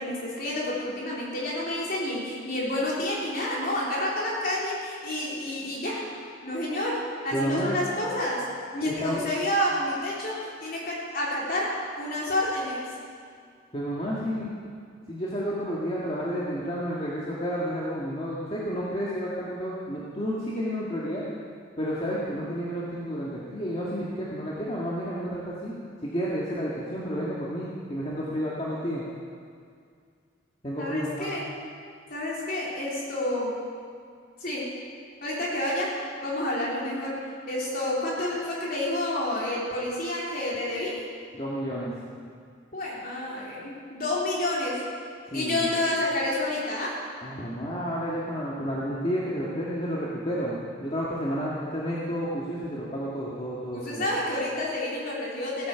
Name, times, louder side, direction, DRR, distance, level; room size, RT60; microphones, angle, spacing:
voice 1, 0.0-6.1 6.4-8.4 8.7-12.9 30.8-31.5 32.1-33.5 34.4-34.7 35.2-35.9 36.2-37.2 37.5-41.0 42.7-44.8 45.3-47.0 53.7-55.7, left 1 dB, 45° left, -5 dB, 3.7 m, -29 dB
voice 2, 7.3-7.8 8.8-9.2 13.7-14.5 15.1-21.2 21.8-25.7 26.0-29.0 30.6-31.3 41.4-41.9 45.3-45.6 47.2-54.0, equal, 30° left, -7 dB, 1.7 m, -31 dB
16.5 x 9.6 x 6.9 m, 2.2 s
head